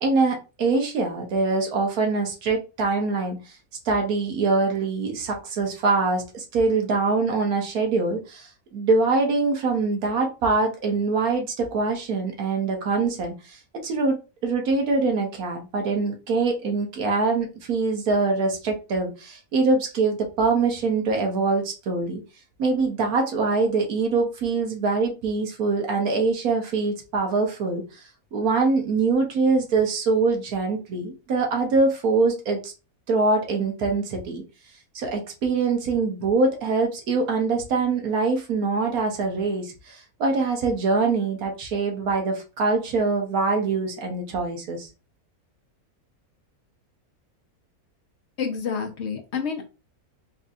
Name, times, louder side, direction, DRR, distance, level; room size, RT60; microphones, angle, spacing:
voice 1, 0.0-3.6 3.8-14.2 14.4-22.2 22.6-32.7 33.1-34.4 34.9-44.9, right 3 dB, 70° right, 2 dB, 1.3 m, -24 dB
voice 2, 48.4-49.6, left 6 dB, 55° left, 4 dB, 0.9 m, -28 dB
4.3 x 2.6 x 2.4 m, 0.30 s
omnidirectional pair, 1.6 m